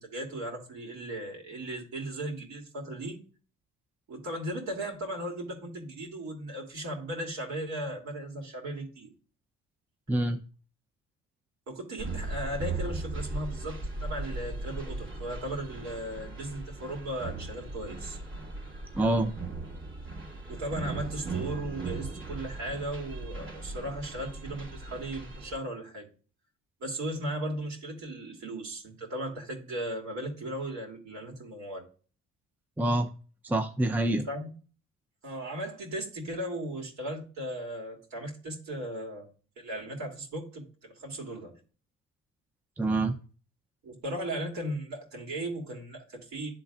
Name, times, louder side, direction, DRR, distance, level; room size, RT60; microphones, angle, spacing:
voice 1, 0.0-3.2 4.1-9.1 11.7-18.2 20.5-26.1 26.8-31.8 34.2-34.5 35.2-39.3 39.6-41.6 43.8-46.5, right 1 dB, 65° right, 1 dB, 2.6 m, -37 dB
voice 2, 10.1-10.4 18.9-19.3 32.8-33.1 33.4-34.3 42.8-43.2, right 2 dB, 5° right, 6 dB, 0.5 m, -26 dB
sound 1, 12.0-25.6, right 2 dB, 40° right, 2.3 m, -38 dB
11.5 x 3.9 x 2.4 m, 0.38 s
cardioid pair, 90°, 30 cm